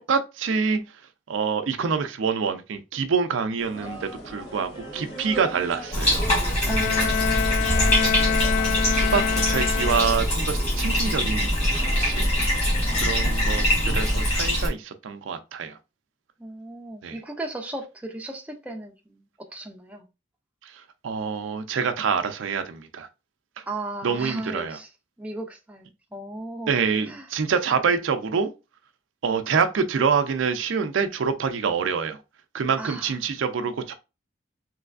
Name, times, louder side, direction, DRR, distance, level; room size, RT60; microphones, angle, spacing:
voice 1, 0.1-0.8 1.3-6.2 8.0-8.3 8.9-12.3 13.0-13.6 13.9-15.8 17.0-17.2 21.0-23.1 24.0-24.8 26.7-28.5 29.2-32.2 32.5-33.9, right 5 dB, 70° right, 0.4 m, -26 dB
sound 1, 3.6-14.2, right 1 dB, 55° left, 1.4 m, -40 dB
Bathtub (filling or washing), 5.9-14.7, equal, 30° left, 1.7 m, -23 dB
Bowed string instrument, 6.7-10.4, left 8 dB, 80° left, 0.3 m, -26 dB
voice 2, 6.7-7.9 12.9-13.2 16.4-19.2 19.5-20.0 23.7-24.9 25.2-26.7 27.1-27.3 32.8-33.1, right 2 dB, 5° right, 0.4 m, -36 dB
3.3 x 3.0 x 2.4 m
head